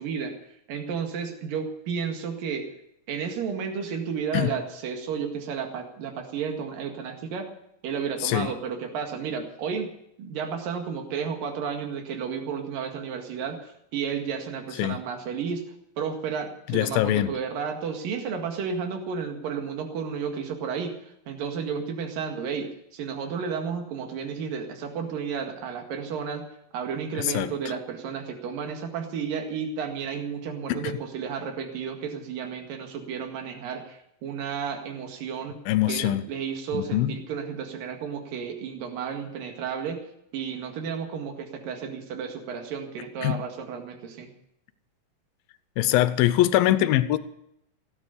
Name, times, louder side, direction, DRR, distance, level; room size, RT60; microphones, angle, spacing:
voice 1, 0.0-2.7 3.1-7.5 7.8-9.9 10.2-15.6 16.0-26.5 26.7-35.6 35.9-40.0 40.3-44.3, right 6 dB, 75° right, 4 dB, 3.6 m, -32 dB
voice 2, 16.7-17.3 27.2-27.5 30.7-30.9 35.7-36.2 36.7-37.1 43.2-43.4 45.8-47.2, left 14 dB, 85° left, 13 dB, 2.6 m, -23 dB
17.0 x 9.7 x 8.4 m, 0.75 s
omnidirectional pair, 4.1 m